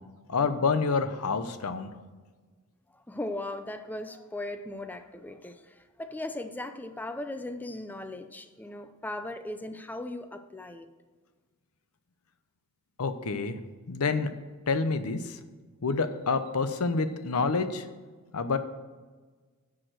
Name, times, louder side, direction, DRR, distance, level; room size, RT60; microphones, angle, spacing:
voice 1, 0.3-1.9 13.0-13.6 13.9-14.3 14.7-15.4 15.8-17.8 18.3-18.6, left 4 dB, 80° left, 11 dB, 0.7 m, -28 dB
voice 2, 2.9-10.9, left 1 dB, 10° left, 8 dB, 0.4 m, -38 dB
10.0 x 4.9 x 6.3 m, 1.4 s
head